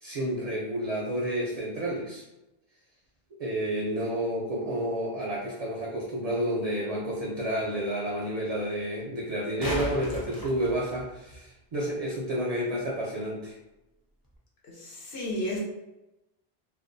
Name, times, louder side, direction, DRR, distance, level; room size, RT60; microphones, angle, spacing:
voice 1, 0.0-2.2 3.4-13.5, right 1 dB, 55° right, -3 dB, 0.4 m, -30 dB
sound 1, 9.2-11.4 14.2-14.3, equal, 30° left, 0.4 m, -36 dB
voice 2, 14.7-15.6, left 1 dB, 80° left, -4 dB, 1.0 m, -33 dB
2.5 x 2.2 x 2.5 m, 0.95 s
omnidirectional pair, 1.0 m